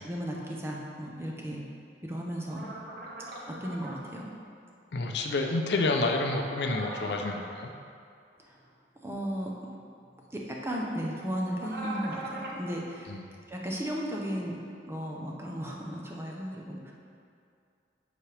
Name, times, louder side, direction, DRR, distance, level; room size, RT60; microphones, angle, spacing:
voice 1, 0.0-1.6 2.0-2.7 3.5-4.3 8.5-8.6 9.0-9.5 10.3-13.2 13.5-14.6 14.9-16.9, equal, 15° right, -2 dB, 0.6 m, -35 dB
sound 1, 2.5-4.0 5.6-7.4 11.5-12.6, right 1 dB, 55° right, 0.8 m, -40 dB
voice 2, 4.9-7.7 13.1-13.2, left 2 dB, 75° left, 3 dB, 0.5 m, -29 dB
7.2 x 4.9 x 3.3 m, 2.4 s
head